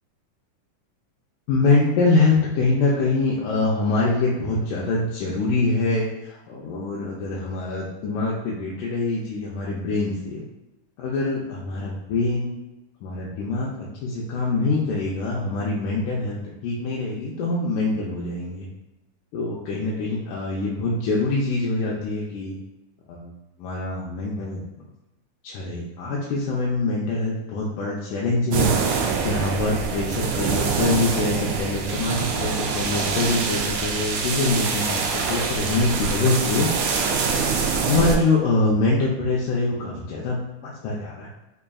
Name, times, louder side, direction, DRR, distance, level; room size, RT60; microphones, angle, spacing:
voice 1, 1.5-10.4 11.0-12.5 13.0-13.7 14.0-18.7 19.3-22.6 23.1-23.3 23.6-24.9 25.4-28.7 29.2-35.0 35.3-36.7 37.9-41.3, left 3 dB, 85° left, -5 dB, 2.0 m, -24 dB
sound 1, 28.5-38.2, right 5 dB, 85° right, 1.4 m, -25 dB
5.2 x 2.6 x 2.3 m, 0.99 s
omnidirectional pair, 3.5 m